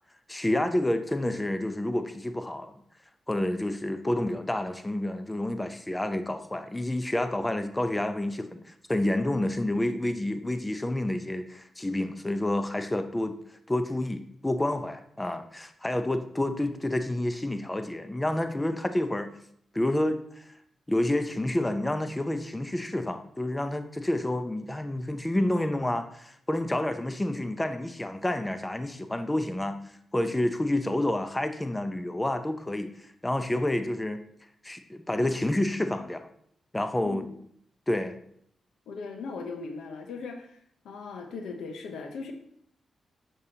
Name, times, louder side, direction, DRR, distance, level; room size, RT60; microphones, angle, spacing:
voice 1, 0.3-2.7 3.3-13.4 13.7-19.3 19.7-20.5 20.9-29.8 30.1-34.2 34.6-36.3 36.7-37.3 37.9-38.2, left 1 dB, 15° left, 8 dB, 0.6 m, -29 dB
voice 2, 38.9-40.6 40.8-42.3, left 4 dB, 90° left, 5 dB, 0.8 m, -38 dB
6.6 x 5.4 x 2.8 m, 0.67 s
cardioid pair, 60°, 0 cm